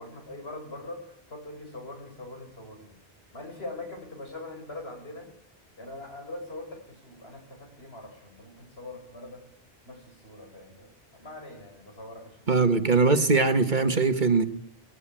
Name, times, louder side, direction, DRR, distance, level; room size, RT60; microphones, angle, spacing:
voice 1, 0.0-3.0 3.3-5.3 5.8-9.4 9.8-12.7, left 2 dB, 75° left, 6.2 m, -42 dB
voice 2, 12.5-14.4, right 4 dB, 45° right, 1.8 m, -21 dB
29.0 x 20.0 x 9.1 m
omnidirectional pair, 1.1 m